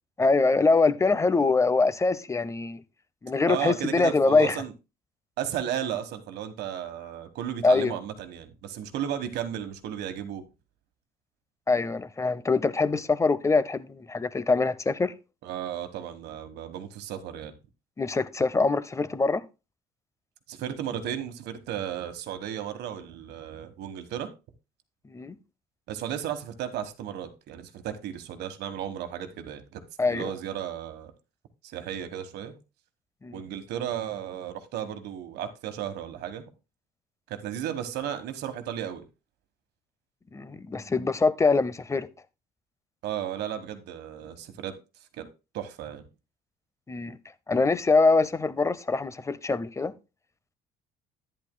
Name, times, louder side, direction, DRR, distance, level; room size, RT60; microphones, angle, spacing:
voice 1, 0.2-2.8 3.2-4.6 7.6-7.9 11.7-15.1 18.0-19.4 25.1-25.4 30.0-30.3 33.2-33.3 40.3-42.1 46.9-47.2 47.5-49.9, left 3 dB, 15° left, 0.7 m, -24 dB
voice 2, 3.5-4.7 5.4-10.4 15.4-17.5 20.5-24.3 25.9-29.8 30.1-31.1 31.6-32.5 33.3-36.4 37.3-39.0 43.0-44.8 45.2-45.3 45.5-46.0, right 10 dB, 80° right, 1.4 m, -34 dB
11.0 x 10.0 x 2.2 m
cardioid pair, 110°, 17 cm